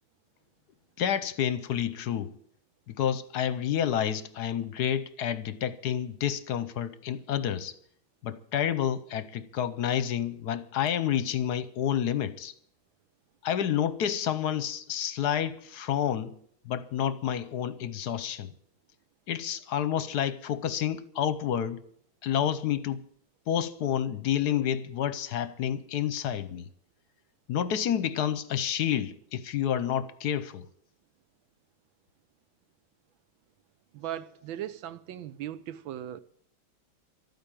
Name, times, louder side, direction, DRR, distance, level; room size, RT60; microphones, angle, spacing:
voice 1, 1.0-2.3 2.9-7.7 8.2-12.5 13.4-16.3 16.7-18.5 19.3-21.8 22.2-23.0 23.5-26.7 27.5-30.7, left 9 dB, 65° left, 1.1 m, -29 dB
voice 2, 33.9-36.2, right 11 dB, 75° right, 1.6 m, -38 dB
12.5 x 9.3 x 8.9 m
omnidirectional pair, 2.2 m